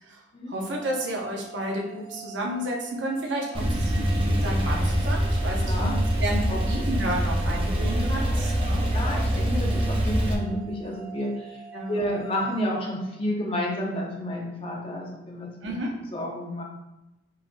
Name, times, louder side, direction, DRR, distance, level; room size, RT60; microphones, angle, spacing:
voice 1, 0.5-8.9 11.7-12.0 15.6-15.9, right 1 dB, 70° right, -1 dB, 0.8 m, -31 dB
sound 1, 0.6-13.5, right 11 dB, 70° left, 1.5 m, -46 dB
Male speech man speaking / Car / Idling, 3.5-10.3, equal, 25° right, 0.5 m, -24 dB
voice 2, 5.6-6.0 6.5-6.6 8.9-11.6 11.9-15.7 16.1-16.7, equal, 30° left, -1 dB, 0.6 m, -30 dB
4.7 x 3.0 x 2.2 m, 0.96 s
head